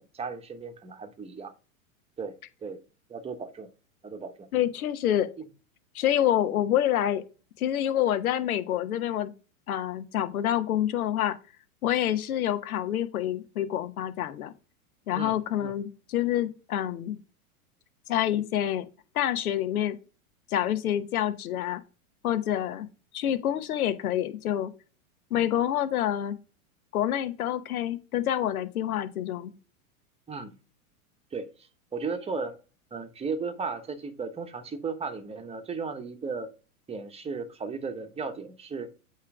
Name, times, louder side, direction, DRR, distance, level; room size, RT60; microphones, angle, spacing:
voice 1, 0.0-1.5 2.2-2.3 2.6-2.8 3.1-3.7 4.0-4.5 15.1-15.7 30.3-30.5 31.3-31.5 31.9-32.6 32.9-36.5 36.9-38.9, right 4 dB, 15° right, 1.0 m, -35 dB
voice 2, 4.5-5.3 5.9-7.2 7.6-9.3 9.7-11.4 11.8-14.5 15.1-17.2 18.1-18.8 19.1-20.0 20.5-21.8 22.2-22.9 23.1-24.7 25.3-26.4 26.9-29.5, left 11 dB, 75° left, 1.1 m, -27 dB
8.5 x 3.2 x 4.8 m
hypercardioid pair, 105°, 43 cm